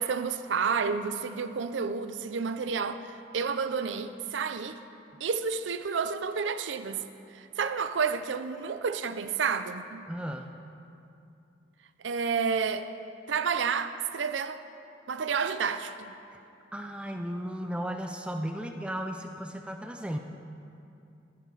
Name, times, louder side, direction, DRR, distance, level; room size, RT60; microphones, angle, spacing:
voice 1, 0.0-4.8 5.2-7.0 7.3-10.0 12.0-12.9 13.3-14.6 15.1-16.1, right 5 dB, 85° right, 0.5 m, -30 dB
voice 2, 10.1-10.5 16.3-16.4 16.7-20.2, equal, 5° right, 0.4 m, -35 dB
15.0 x 9.2 x 4.0 m
head